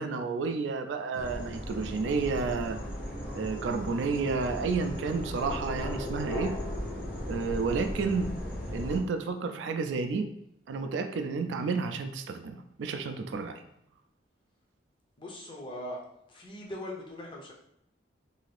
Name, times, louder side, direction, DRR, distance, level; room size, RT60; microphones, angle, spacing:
voice 1, 0.0-2.8 3.3-6.5 7.3-8.3 8.7-10.3 10.7-13.6, right 4 dB, 90° right, 7 dB, 0.3 m, -31 dB
sound 1, 1.1-9.0, equal, 50° left, 0.9 m, -36 dB
voice 2, 15.2-16.0 16.3-17.5, left 1 dB, 25° left, -1 dB, 0.5 m, -40 dB
2.7 x 2.5 x 3.2 m, 0.75 s
head